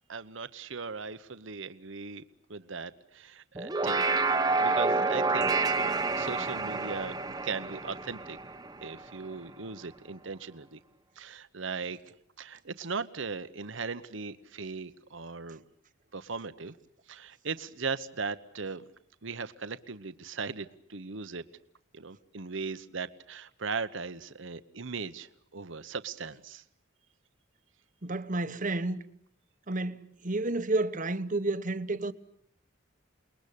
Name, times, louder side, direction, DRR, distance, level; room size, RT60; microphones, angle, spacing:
voice 1, 0.1-2.2 2.5-7.1 7.4-8.4 8.8-10.8 11.2-15.6 16.1-16.8 17.1-18.8 19.2-21.4 21.9-26.6, right 4 dB, 65° right, 1.1 m, -38 dB
sound 1, 3.5-9.1, right 3 dB, 20° right, 1.1 m, -29 dB
voice 2, 28.0-29.0 29.7-32.1, right 2 dB, 40° right, 1.2 m, -30 dB
29.0 x 21.5 x 8.5 m
head